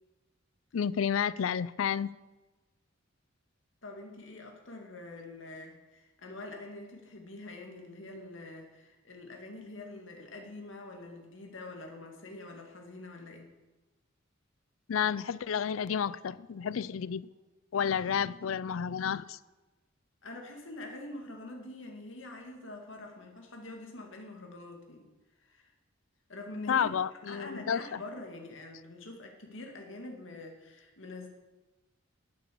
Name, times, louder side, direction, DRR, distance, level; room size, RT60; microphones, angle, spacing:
voice 1, 0.7-2.1 14.9-17.2 17.7-19.4 26.7-28.0, left 7 dB, 85° left, 0.4 m, -31 dB
voice 2, 3.8-13.5 17.8-18.1 20.2-25.1 25.4-25.7 26.3-26.9 27.3-31.3, left 2 dB, 65° left, 2.3 m, -45 dB
11.0 x 9.0 x 7.0 m
head